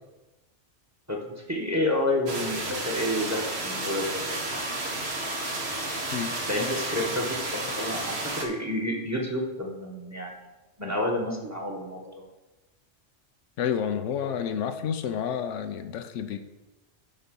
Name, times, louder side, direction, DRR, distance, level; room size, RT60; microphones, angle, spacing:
voice 1, 1.1-4.6 6.5-10.3 10.8-12.2, left 1 dB, 15° right, 0 dB, 1.2 m, -30 dB
sound 1, 2.3-8.4, right 2 dB, 60° right, 1.3 m, -32 dB
voice 2, 13.6-16.4, left 8 dB, 80° left, 10 dB, 1.0 m, -30 dB
10.5 x 4.0 x 5.4 m, 1.1 s
omnidirectional pair, 1.2 m